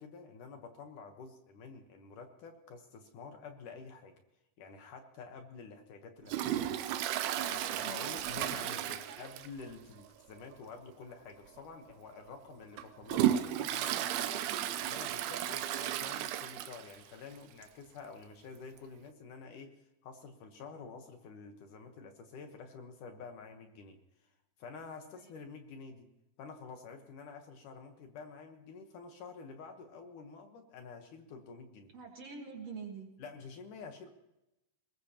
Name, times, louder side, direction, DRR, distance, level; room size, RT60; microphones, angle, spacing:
voice 1, 0.0-4.1 4.6-6.7 7.3-14.4 14.8-19.7 20.0-24.0 24.6-26.1 26.4-31.9 33.2-34.1, left 5 dB, 65° left, 5 dB, 2.4 m, -49 dB
Toilet flush, 6.3-9.7 10.0-10.1 10.5-10.6 11.5-11.6 12.1-17.0 17.4-17.5 17.6-17.7 18.8-18.9, right 11 dB, 85° right, 2.8 m, -34 dB
voice 2, 7.4-9.3 25.2-25.3 31.9-33.1, right 5 dB, 50° right, 2 dB, 2.2 m, -47 dB
21.0 x 20.5 x 2.9 m, 0.91 s
omnidirectional pair, 4.4 m